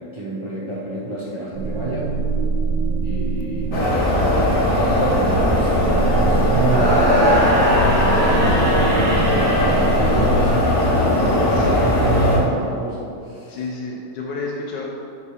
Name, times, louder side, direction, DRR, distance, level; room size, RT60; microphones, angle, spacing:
voice 1, 0.0-2.1 3.0-13.6, right 2 dB, 40° right, -6 dB, 0.4 m, -29 dB
sound 1, 1.5-10.5, right 4 dB, 85° right, 1.3 m, -24 dB
sound 2, 3.7-12.4, left 1 dB, 50° left, 1.4 m, -19 dB
sound 3, 6.6-10.8, equal, 60° right, 1.9 m, -22 dB
voice 2, 11.4-11.9 13.5-14.9, left 3 dB, 75° left, -2 dB, 1.3 m, -31 dB
5.4 x 4.9 x 5.0 m, 2.7 s
omnidirectional pair, 1.9 m